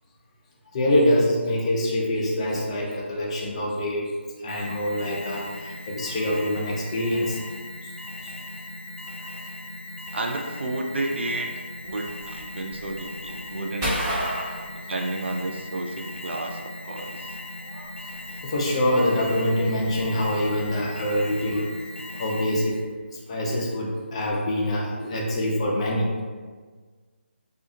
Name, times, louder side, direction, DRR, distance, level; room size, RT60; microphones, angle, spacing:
voice 1, 0.7-4.1 4.4-7.4 7.8-7.9 8.2-8.3 18.4-21.6 22.1-22.8 23.3-26.1, left 1 dB, 30° left, -3 dB, 0.5 m, -25 dB
Alarm, 4.5-22.9, left 1 dB, 90° left, 0.4 m, -38 dB
voice 2, 10.1-14.2 14.7-17.4, right 2 dB, 65° right, 2 dB, 0.4 m, -31 dB
sound 1, 11.7-15.6 15.9-21.7, equal, 20° right, 0.8 m, -34 dB
2.4 x 2.4 x 2.6 m, 1.5 s
figure-of-eight pair, 155°, 7 cm